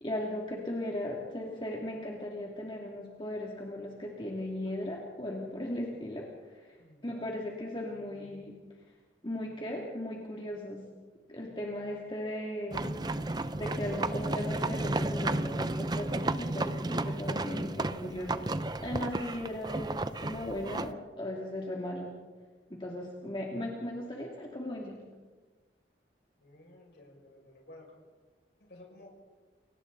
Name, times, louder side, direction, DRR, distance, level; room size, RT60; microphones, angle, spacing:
voice 1, 0.0-8.6 9.2-10.8 11.3-12.9 13.5-18.5 18.8-22.1 22.7-25.0, left 1 dB, 30° left, -2 dB, 2.6 m, -37 dB
voice 2, 6.8-7.3 26.4-27.9 28.6-29.1, left 1 dB, 70° left, -1 dB, 6.4 m, -54 dB
sound 1, 12.7-20.9, right 2 dB, 25° right, 0.6 m, -33 dB
29.0 x 24.5 x 4.1 m, 1.4 s
head